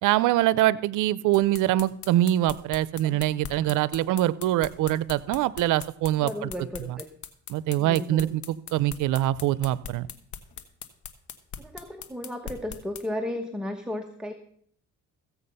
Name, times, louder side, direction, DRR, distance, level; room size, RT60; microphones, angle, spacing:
voice 1, 0.0-6.5 6.9-7.0 7.5-10.1, right 14 dB, 90° right, 19 dB, 0.6 m, -24 dB
sound 1, 1.3-13.0, left 8 dB, 70° left, 1.3 m, -40 dB
voice 2, 6.2-7.1 7.8-8.3 11.6-14.3, left 1 dB, 5° right, 4 dB, 1.1 m, -34 dB
15.5 x 8.2 x 5.5 m, 0.63 s
cardioid pair, 90°, 30 cm